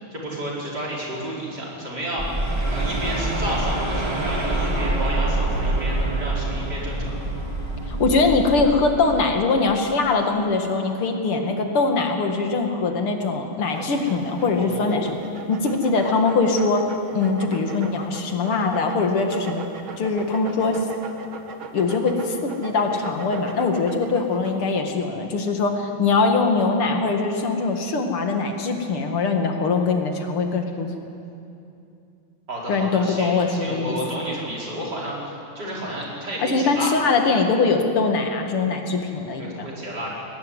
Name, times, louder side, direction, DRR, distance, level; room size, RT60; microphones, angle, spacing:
voice 1, 0.0-2.3 2.7-7.2 14.6-15.0 32.5-36.9 39.4-40.1, equal, 50° right, -4 dB, 5.8 m, -31 dB
sound 1, 2.2-9.3, right 2 dB, 15° right, 2.1 m, -25 dB
voice 2, 7.9-15.1 15.5-19.6 20.0-20.8 21.7-30.9 32.7-34.0 36.4-39.7, left 4 dB, 85° left, 4 dB, 2.9 m, -22 dB
sound 2, 13.7-24.7, right 5 dB, 70° right, 2.2 m, -38 dB
21.0 x 19.5 x 9.8 m, 2.7 s
omnidirectional pair, 2.3 m